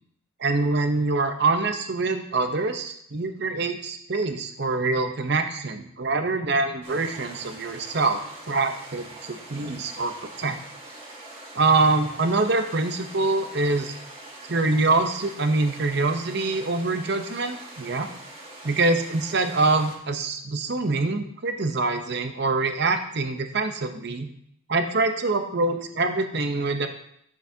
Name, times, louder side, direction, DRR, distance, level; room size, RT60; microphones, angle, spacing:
voice 1, 0.4-8.2 8.5-10.6 11.5-14.0 14.5-18.1 18.7-24.3 24.7-26.9, right 3 dB, 55° right, 7 dB, 0.7 m, -25 dB
sound 1, 6.8-20.0, right 2 dB, 25° right, 2.1 m, -43 dB
10.5 x 7.1 x 2.8 m, 0.71 s
head